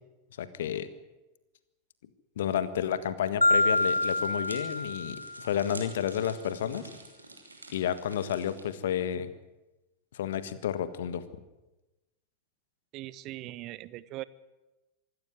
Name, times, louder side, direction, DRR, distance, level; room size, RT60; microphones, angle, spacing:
voice 1, 0.4-0.9 2.4-6.9 7.7-9.3 10.1-11.2, left 9 dB, 60° left, 13 dB, 1.6 m, -31 dB
Marimba xylophone, 3.4-5.6, left 2 dB, 85° left, 0.7 m, -27 dB
sound 1, 3.5-8.6, right 2 dB, 80° right, 3.4 m, -49 dB
voice 2, 12.9-14.2, right 16 dB, 40° right, 18 dB, 0.8 m, -40 dB
25.0 x 13.5 x 9.4 m, 1.0 s
figure-of-eight pair, 90°, 0 cm